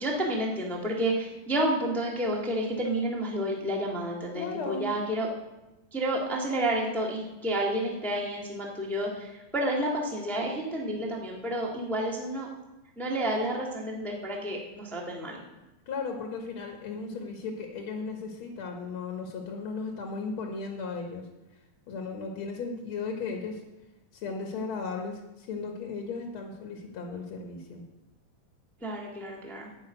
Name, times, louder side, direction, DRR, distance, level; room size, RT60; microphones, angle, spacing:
voice 1, 0.0-5.3 5.9-12.5 13.0-15.4 28.8-29.7, right 1 dB, ahead, -2 dB, 1.1 m, -30 dB
voice 2, 4.4-4.9 15.9-21.3 21.9-23.6 24.1-27.8, left 4 dB, 55° left, 2 dB, 1.8 m, -36 dB
12.5 x 5.5 x 8.8 m, 1.0 s
omnidirectional pair, 3.6 m